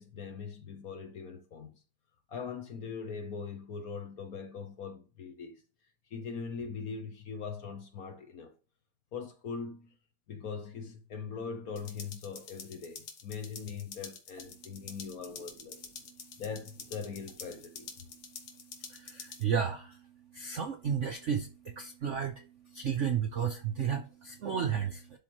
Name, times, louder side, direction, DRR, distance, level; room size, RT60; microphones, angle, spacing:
voice 1, 0.0-1.7 2.3-5.6 6.1-8.5 9.1-9.9 10.3-15.8 16.4-17.9, left 5 dB, 60° left, 1.1 m, -41 dB
sound 1, 11.8-19.4, left 7 dB, 80° left, 1.9 m, -48 dB
voice 2, 18.9-20.0 20.3-25.2, right 7 dB, 70° right, 0.7 m, -33 dB
11.5 x 4.0 x 3.0 m
omnidirectional pair, 2.1 m